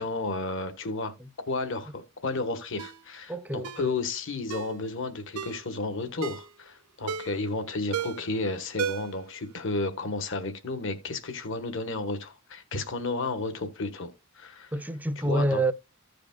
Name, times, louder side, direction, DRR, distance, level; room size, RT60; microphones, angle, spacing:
voice 1, 0.0-1.1 1.5-14.7 15.2-15.6, left 3 dB, 60° left, 1.3 m, -32 dB
Ringtone, 2.8-3.0 3.6-3.9 4.5-4.8 5.4-5.6 6.2-6.5 7.1-7.4 7.9-8.3 8.8-9.2 9.5-9.6, right 6 dB, 90° right, 0.6 m, -33 dB
voice 2, 3.3-3.7 14.7-15.7, right 1 dB, 10° right, 0.5 m, -27 dB
15.0 x 5.1 x 2.3 m
head